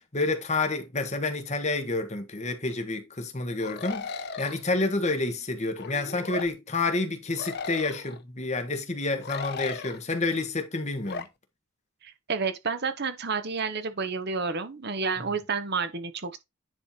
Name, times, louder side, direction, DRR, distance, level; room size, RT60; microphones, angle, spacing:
voice 1, 0.1-11.2, left 3 dB, 30° left, 1.4 m, -29 dB
sound 1, 3.6-4.6 5.8-6.5 7.4-8.2 9.2-10.0 11.0-11.3, left 5 dB, 50° left, 0.7 m, -36 dB
voice 2, 12.0-16.4, right 4 dB, 50° right, 1.0 m, -30 dB
10.0 x 3.4 x 4.2 m
head